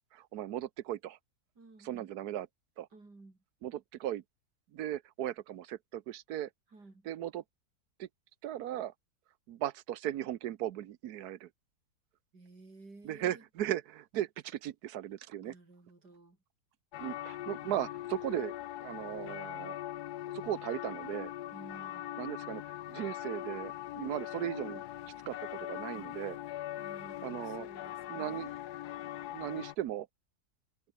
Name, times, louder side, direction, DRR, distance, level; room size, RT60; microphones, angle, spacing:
voice 1, 0.1-1.2 1.8-2.5 2.8-2.9 3.6-4.2 4.7-6.5 7.1-7.4 8.0-8.1 8.4-8.9 9.5-11.5 13.0-15.5 17.0-18.5 18.8-19.8 20.3-21.3 22.2-24.8 25.3-26.4 27.2-27.7 28.1-28.5 29.3-30.1, right 12 dB, 70° right, 1.3 m, -37 dB
voice 2, 1.6-2.2 2.9-3.4 6.7-7.1 12.3-13.4 15.4-16.4 21.5-22.1 25.9-26.2 26.8-28.7, right 3 dB, 90° right, 5.8 m, -54 dB
sound 1, 16.9-29.8, left 14 dB, 75° left, 1.2 m, -41 dB
omnidirectional pair, 1.7 m